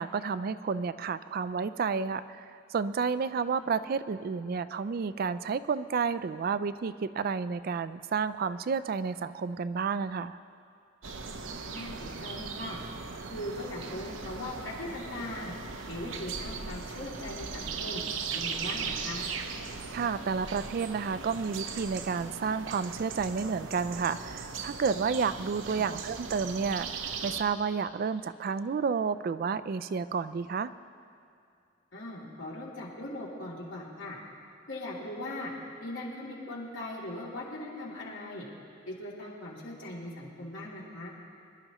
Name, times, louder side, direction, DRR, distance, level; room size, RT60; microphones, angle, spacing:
voice 1, 0.0-10.4 19.9-30.7, right 5 dB, 50° right, 14 dB, 0.3 m, -31 dB
sound 1, 11.0-27.4, right 5 dB, 85° right, 0.8 m, -38 dB
voice 2, 11.4-12.8 13.3-15.5 15.9-18.0 18.3-19.3 25.8-26.0 31.9-34.2 34.7-35.5 35.8-38.5 38.9-41.1, left 1 dB, 75° left, -5 dB, 2.9 m, -40 dB
25.5 x 11.5 x 3.0 m, 2.5 s
head